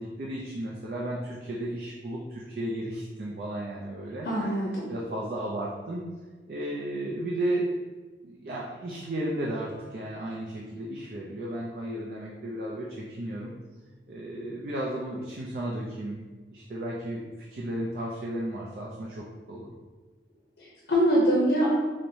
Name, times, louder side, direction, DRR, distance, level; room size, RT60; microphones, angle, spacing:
voice 1, 0.0-4.6 4.9-6.0 6.5-7.7 8.2-13.5 14.1-16.2 16.5-19.7, right 1 dB, 50° right, -4 dB, 0.4 m, -34 dB
voice 2, 4.2-4.9 20.6-21.7, equal, 65° left, -5 dB, 0.6 m, -24 dB
4.5 x 2.1 x 2.6 m, 1.4 s
head